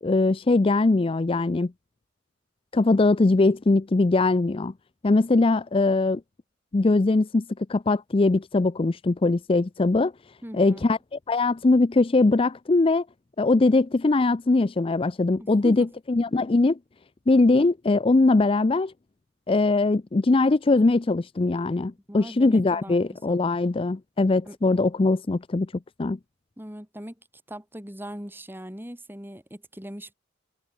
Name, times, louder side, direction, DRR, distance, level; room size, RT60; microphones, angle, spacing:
voice 1, 0.0-1.7 2.7-4.7 5.0-6.2 6.7-10.1 10.5-13.0 13.4-16.8 17.3-18.9 19.5-25.7 26.0-26.2, left 3 dB, 30° left, 0.5 m, -21 dB
voice 2, 10.4-10.8 15.4-15.9 22.1-23.4 24.5-24.6 26.6-27.2 27.5-30.1, equal, 10° right, 5.0 m, -39 dB
head